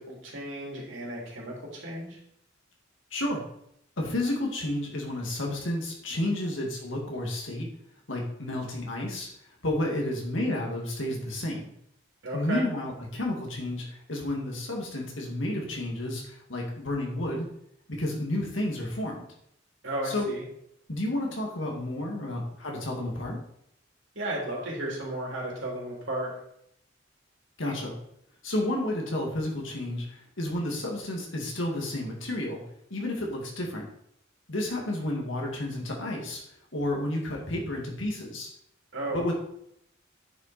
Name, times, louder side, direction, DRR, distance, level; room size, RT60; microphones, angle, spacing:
voice 1, 0.0-2.2 12.2-12.7 19.8-20.4 24.1-26.3 38.9-39.3, right 1 dB, 70° right, -3 dB, 3.3 m, -34 dB
voice 2, 4.0-7.7 8.1-9.3 9.6-11.7 12.3-17.5 17.9-19.2 20.0-20.3 20.9-23.4 27.6-27.9 28.4-30.1 30.4-32.6 32.9-33.9 34.5-36.4 36.7-38.5 39.1-39.3, left 1 dB, 75° left, -1 dB, 2.2 m, -31 dB
9.7 x 5.8 x 4.4 m, 0.72 s
head